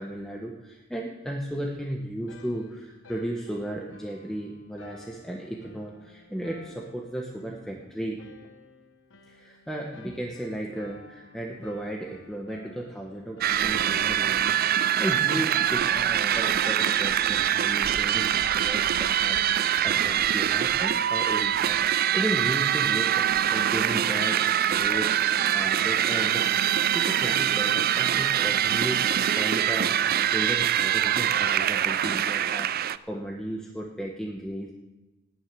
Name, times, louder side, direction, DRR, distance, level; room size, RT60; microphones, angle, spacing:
voice 1, 0.0-8.2 9.3-34.7, right 1 dB, 5° left, -1 dB, 1.3 m, -35 dB
sound 1, 2.3-15.9, left 3 dB, 70° left, 1.3 m, -52 dB
sound 2, 13.4-33.0, right 10 dB, 50° right, 0.4 m, -24 dB
18.5 x 6.7 x 9.0 m, 1.1 s
head